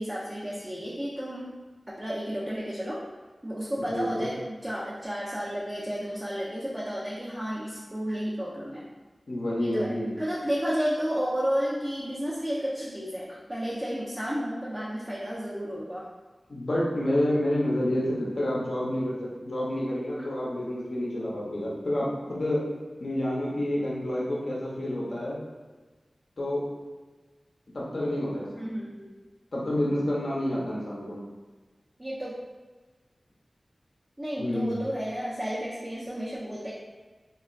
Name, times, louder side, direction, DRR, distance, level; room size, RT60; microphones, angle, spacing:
voice 1, 0.0-1.6 1.9-3.0 3.4-8.9 9.6-16.0 28.5-29.1 32.0-32.4 34.2-36.7, equal, 25° right, -7 dB, 0.5 m, -32 dB
voice 2, 3.8-4.3 9.3-10.1 16.5-22.6 23.0-25.4 26.4-26.6 27.7-28.6 29.5-31.2 34.4-34.8, left 1 dB, 70° left, -5 dB, 0.7 m, -29 dB
2.9 x 2.3 x 2.4 m, 1.3 s
cardioid pair, 40°, 0 cm